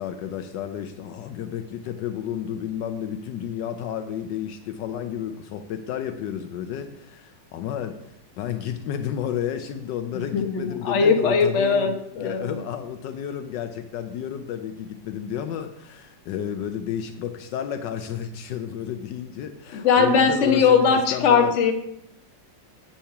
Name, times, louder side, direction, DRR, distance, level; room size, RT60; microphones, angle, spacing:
voice 1, 0.0-21.6, left 9 dB, 75° left, 9 dB, 1.2 m, -32 dB
voice 2, 10.3-12.6 19.7-21.7, left 5 dB, 45° left, 5 dB, 1.1 m, -20 dB
8.5 x 5.7 x 5.7 m, 0.83 s
omnidirectional pair, 2.0 m